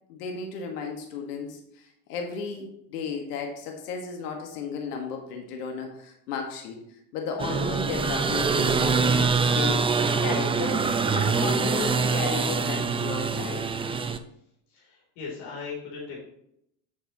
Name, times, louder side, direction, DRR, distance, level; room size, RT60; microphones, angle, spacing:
voice 1, 0.1-6.8 7.1-9.0 9.4-13.7, left 5 dB, 90° left, 3 dB, 1.7 m, -34 dB
sound 1, 7.4-14.2, right 4 dB, 10° right, 0.5 m, -24 dB
voice 2, 14.7-16.2, left 5 dB, 65° left, -3 dB, 3.5 m, -38 dB
9.8 x 7.2 x 3.0 m, 0.74 s
supercardioid pair, 115°, 45 cm